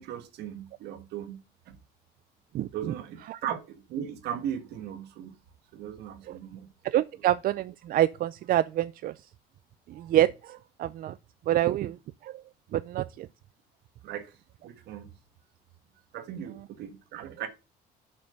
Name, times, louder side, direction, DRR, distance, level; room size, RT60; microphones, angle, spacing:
voice 1, 0.0-1.4 1.7-1.8 2.7-5.3 5.7-6.7 9.9-10.1 11.6-11.9 14.0-14.3 14.6-15.1 16.1-17.5, right 9 dB, 80° right, 1.5 m, -38 dB
voice 2, 6.8-9.1 10.0-11.1 11.5-12.0 12.2-12.4 12.7-13.3, right 12 dB, 60° right, 0.4 m, -26 dB
6.8 x 5.8 x 6.5 m
cardioid pair, 110°, 17 cm